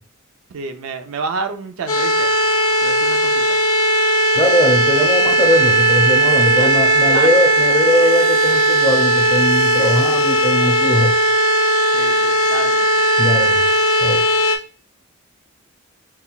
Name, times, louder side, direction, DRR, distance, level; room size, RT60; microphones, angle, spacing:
voice 1, 0.5-2.3 2.8-3.6 6.5-6.7 7.1-7.4 11.9-13.0, right 4 dB, 85° right, 0.5 m, -29 dB
sound 1, 1.9-14.6, right 2 dB, 85° left, 0.7 m, -16 dB
voice 2, 4.3-11.2 13.2-13.6 14.0-14.2, left 1 dB, 15° left, 0.5 m, -20 dB
5.5 x 2.2 x 2.3 m
head